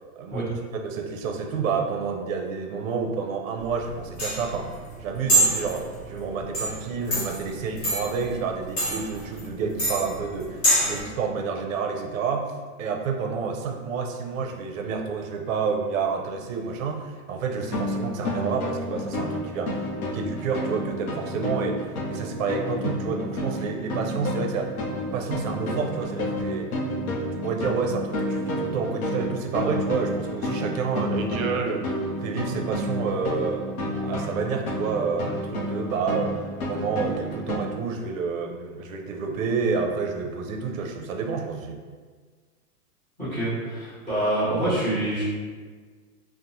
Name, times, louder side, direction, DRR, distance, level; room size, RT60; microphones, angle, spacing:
voice 1, 0.2-4.7 5.0-19.9 20.1-21.8 22.1-24.7 25.1-26.7 27.4-33.6 34.0-36.3 36.7-41.8, right 5 dB, 60° right, 2 dB, 0.5 m, -29 dB
sound 1, 3.6-11.0, right 1 dB, 35° left, 0.8 m, -26 dB
sound 2, 17.6-37.6, left 1 dB, 65° left, 0.6 m, -30 dB
voice 2, 43.2-45.2, right 1 dB, 5° left, -11 dB, 0.5 m, -26 dB
2.9 x 2.0 x 2.5 m, 1.5 s
hypercardioid pair, 165°, 46 cm